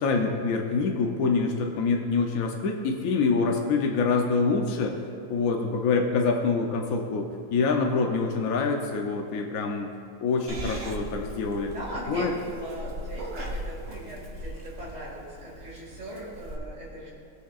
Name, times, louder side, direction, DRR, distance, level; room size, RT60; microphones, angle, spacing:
voice 1, 0.0-4.9 5.3-9.9 10.2-11.8 12.1-12.3, left 4 dB, 70° left, 2 dB, 1.1 m, -26 dB
Purr / Meow, 10.5-16.6, right 1 dB, 40° right, 1.2 m, -39 dB
voice 2, 11.7-17.1, right 1 dB, 25° right, -6 dB, 2.1 m, -39 dB
19.5 x 6.6 x 2.4 m, 2.3 s
omnidirectional pair, 1.7 m